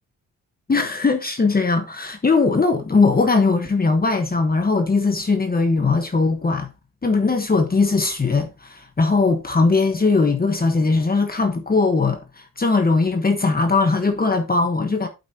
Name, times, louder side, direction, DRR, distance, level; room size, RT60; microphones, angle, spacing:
voice 1, 0.7-6.7 7.0-15.1, left 3 dB, 25° left, 1.2 m, -19 dB
8.3 x 8.2 x 2.8 m
cardioid pair, 105°, 34 cm